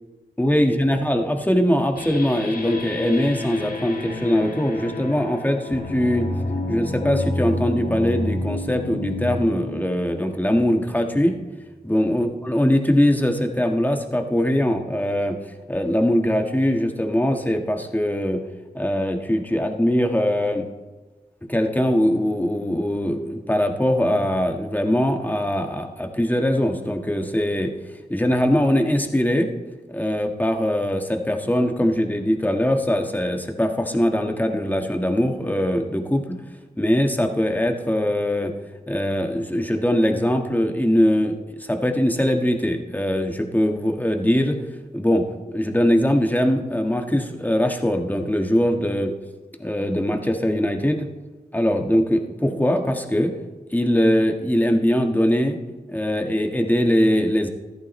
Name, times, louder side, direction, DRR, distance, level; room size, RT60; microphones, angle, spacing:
voice 1, 0.4-6.3 6.7-11.4 11.8-15.4 15.7-18.4 18.7-20.6 21.5-27.7 28.1-29.5 29.9-36.4 36.8-38.5 38.9-44.6 44.9-49.1 49.6-51.1 51.5-53.3 53.7-55.6 55.9-57.5, equal, 10° left, 4 dB, 1.5 m, -21 dB
sound 1, 2.0-11.3, left 2 dB, 65° left, 1.7 m, -30 dB
14.0 x 11.0 x 3.2 m, 1.2 s
cardioid pair, 45°, 16 cm